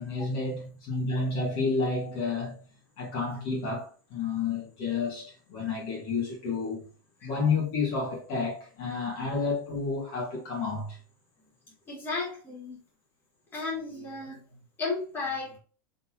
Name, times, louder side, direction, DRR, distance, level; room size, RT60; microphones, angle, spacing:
voice 1, 0.0-2.6 3.0-6.9 7.2-11.0, left 4 dB, 45° left, 1.9 m, -30 dB
voice 2, 11.9-12.8 13.5-14.4 14.8-15.6, left 3 dB, 15° left, 2.3 m, -34 dB
4.0 x 3.9 x 2.9 m
supercardioid pair, 145°, 11 cm